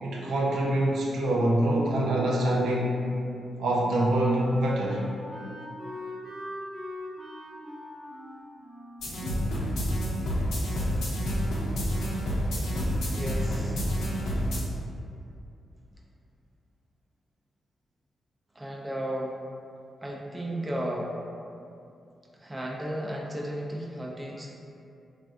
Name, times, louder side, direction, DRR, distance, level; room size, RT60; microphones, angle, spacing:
voice 1, 0.0-3.0 3.6-5.0, right 1 dB, 80° right, -4 dB, 0.4 m, -25 dB
Wind instrument woodwind instrument, 3.3-10.2, left 1 dB, 50° right, 1.0 m, -42 dB
sound 1, 9.0-14.6, equal, 80° left, 0.5 m, -28 dB
voice 2, 13.1-13.8 18.5-19.4 20.0-21.1 22.3-24.5, right 1 dB, 20° right, -2 dB, 0.5 m, -34 dB
3.2 x 2.4 x 2.5 m, 2.5 s
supercardioid pair, 45°, 0 cm